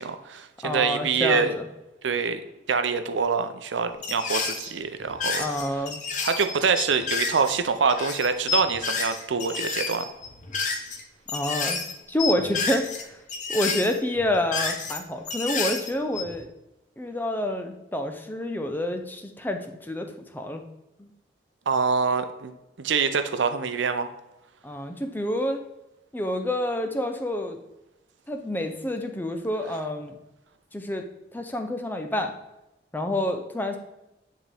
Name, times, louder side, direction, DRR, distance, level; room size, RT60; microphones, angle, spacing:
voice 1, 0.0-1.5 2.0-2.4 2.7-5.5 6.2-10.1 21.7-22.5 22.8-24.1, right 5 dB, 85° right, 9 dB, 0.6 m, -25 dB
voice 2, 0.6-1.7 5.4-6.0 11.3-11.8 12.1-13.2 13.5-16.5 17.0-20.6 21.0-21.1 24.6-25.6 26.1-27.6 28.3-30.2 30.7-31.0 31.3-32.3 32.9-33.8, left 1 dB, 10° left, 5 dB, 0.5 m, -28 dB
sound 1, 4.0-4.7 5.0-7.6 7.9-11.0 11.3-11.9 12.2-13.0 13.3-15.0 15.2-16.4, left 5 dB, 40° left, 0.8 m, -30 dB
9.7 x 3.7 x 3.4 m, 0.93 s
head